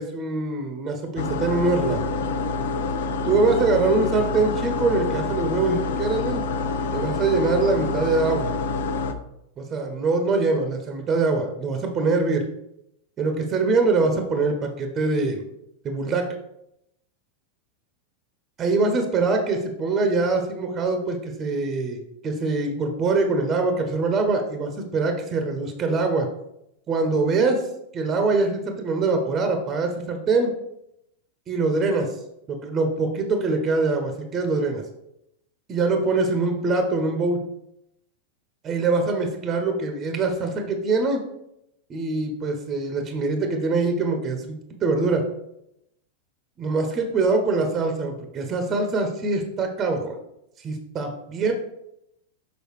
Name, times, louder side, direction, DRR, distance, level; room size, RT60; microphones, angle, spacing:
voice 1, 0.0-2.1 3.2-6.4 6.9-8.5 9.6-12.5 13.2-15.4 15.8-16.2 18.6-26.3 26.9-27.6 27.9-30.5 31.5-32.1 32.5-34.8 35.7-37.4 38.6-41.2 41.9-45.2 46.6-50.2 50.6-51.5, right 3 dB, 25° right, 5 dB, 1.2 m, -23 dB
sound 1, 1.2-9.1, left 3 dB, 60° left, 0.6 m, -27 dB
6.7 x 4.9 x 4.9 m, 0.80 s
figure-of-eight pair, 90°, 0 cm